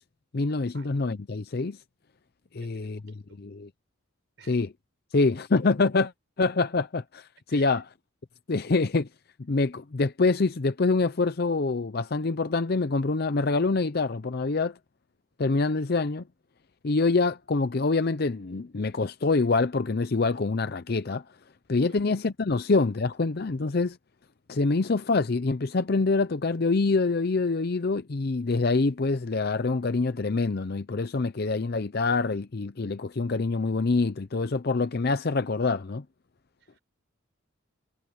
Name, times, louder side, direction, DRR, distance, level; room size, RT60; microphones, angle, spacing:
voice 1, 0.3-1.8 2.5-3.7 4.5-4.7 5.1-6.1 6.4-7.8 8.5-9.1 9.5-14.8 15.4-16.2 16.8-21.2 21.7-24.0 24.5-36.0, left 3 dB, 50° left, 0.6 m, -25 dB
voice 2, 2.6-3.4 4.4-4.6 7.5-7.8 21.9-22.1 22.6-23.1 36.6-36.8, right 6 dB, 60° right, 4.7 m, -55 dB
head